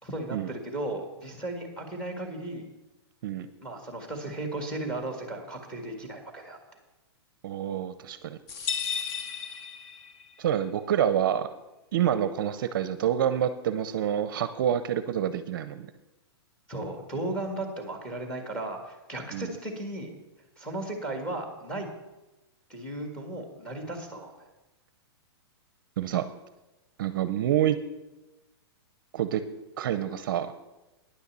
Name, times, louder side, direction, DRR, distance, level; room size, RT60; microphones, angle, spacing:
voice 1, 0.0-2.7 3.6-6.6 16.7-20.1 20.6-21.9 22.7-24.5, right 2 dB, 5° left, 4 dB, 1.7 m, -35 dB
voice 2, 7.4-8.4 10.4-11.5 11.9-15.9 19.3-19.5 26.0-26.3 27.0-27.8 29.1-29.4 29.8-30.5, right 10 dB, 50° right, 12 dB, 0.6 m, -27 dB
sound 1, 8.5-10.4, left 7 dB, 25° left, 0.6 m, -34 dB
10.0 x 6.8 x 7.4 m, 1.0 s
hypercardioid pair, 165°, 14 cm